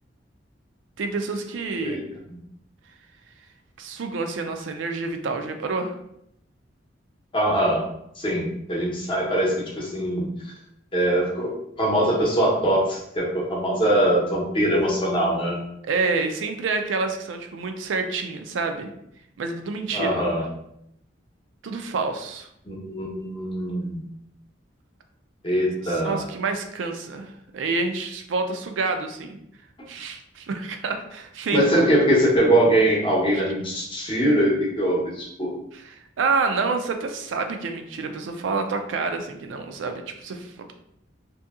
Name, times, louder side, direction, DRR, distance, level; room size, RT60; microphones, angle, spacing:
voice 1, 1.0-2.0 3.8-5.9 15.8-18.9 19.4-20.1 21.6-22.5 25.8-27.3 27.5-29.4 29.9-31.7 33.3-33.4 35.7-40.7, right 4 dB, 90° right, 6 dB, 0.4 m, -28 dB
voice 2, 7.3-7.8 8.2-10.3 10.9-11.5 11.8-15.6 19.9-20.4 22.7-24.0 25.4-26.2 31.5-35.6, right 1 dB, 30° left, -4 dB, 0.8 m, -22 dB
2.7 x 2.6 x 2.4 m, 0.75 s
head